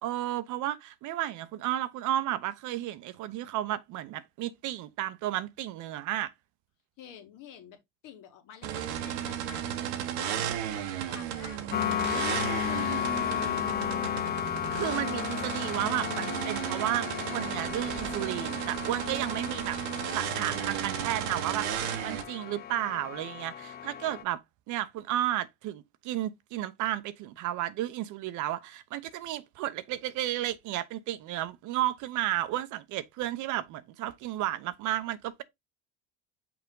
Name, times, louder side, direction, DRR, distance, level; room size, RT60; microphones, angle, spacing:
voice 1, 0.0-6.3 14.7-19.8 20.1-21.7 22.0-24.4 24.7-35.4, right 13 dB, 60° right, 0.8 m, -33 dB
voice 2, 7.0-7.8 8.0-13.7, left 9 dB, 65° left, 1.8 m, -50 dB
sound 1, 8.6-22.2, right 10 dB, 80° right, 1.2 m, -34 dB
sound 2, 11.7-24.2, left 10 dB, 30° left, 0.5 m, -34 dB
6.0 x 4.1 x 3.7 m
supercardioid pair, 85°, 34 cm